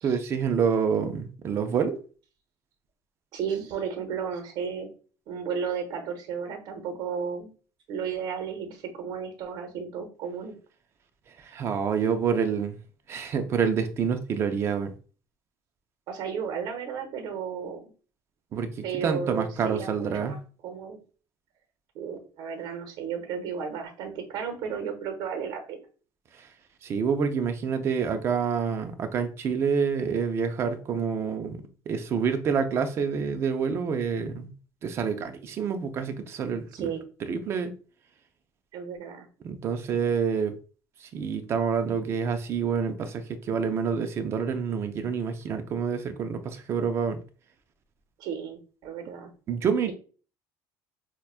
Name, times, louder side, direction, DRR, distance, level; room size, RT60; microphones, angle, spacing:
voice 1, 0.0-2.0 11.4-12.8 13.1-14.9 18.5-20.4 26.4-26.5 26.8-34.5 34.8-37.0 37.3-37.7 39.4-40.5 41.0-47.2 49.5-49.9, right 6 dB, 30° right, 0.4 m, -27 dB
voice 2, 3.3-4.9 5.3-7.5 7.9-10.5 16.1-17.9 18.8-20.4 20.6-21.0 21.9-25.8 36.7-37.0 38.7-39.3 48.2-49.3 49.9-50.0, right 7 dB, 60° right, 0.9 m, -34 dB
5.6 x 2.2 x 2.4 m
cardioid pair, 180°, 8 cm